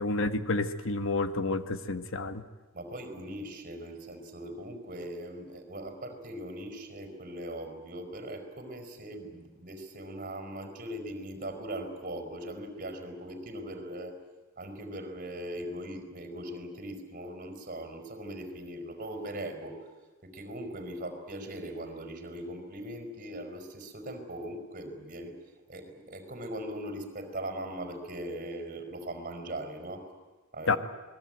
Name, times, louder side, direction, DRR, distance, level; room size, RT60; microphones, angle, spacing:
voice 1, 0.0-2.4 30.7-30.8, left 3 dB, 65° left, 10 dB, 1.4 m, -29 dB
voice 2, 2.7-14.2 14.6-19.9 20.2-25.4 25.7-30.1 30.5-30.8, right 1 dB, 40° right, 7 dB, 4.8 m, -40 dB
27.5 x 20.5 x 9.1 m, 1.2 s
head